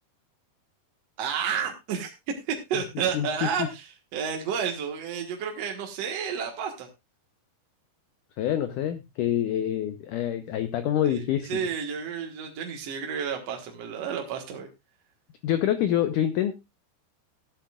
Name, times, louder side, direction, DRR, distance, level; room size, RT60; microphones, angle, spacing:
voice 1, 1.2-2.1 2.5-6.9 11.0-14.7, right 7 dB, 55° right, 2 dB, 2.0 m, -31 dB
voice 2, 8.4-11.6 15.4-16.6, left 11 dB, 80° left, 9 dB, 1.9 m, -26 dB
15.0 x 12.0 x 2.4 m, 0.23 s
omnidirectional pair, 4.6 m